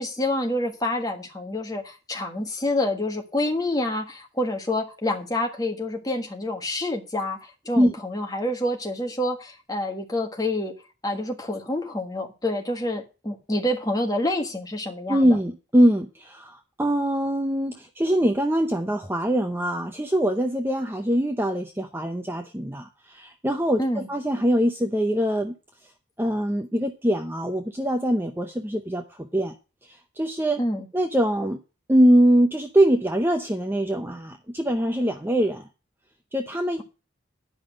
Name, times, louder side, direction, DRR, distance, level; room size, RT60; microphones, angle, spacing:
voice 1, 0.0-10.7 11.0-15.3 23.8-24.1 30.6-30.9, left 1 dB, 20° left, 2 dB, 1.5 m, -27 dB
voice 2, 15.1-25.5 26.2-29.5 29.8-30.6 30.9-31.6 31.9-35.7 36.3-36.8, equal, 10° right, 5 dB, 0.6 m, -23 dB
10.0 x 5.6 x 6.4 m, 0.31 s
head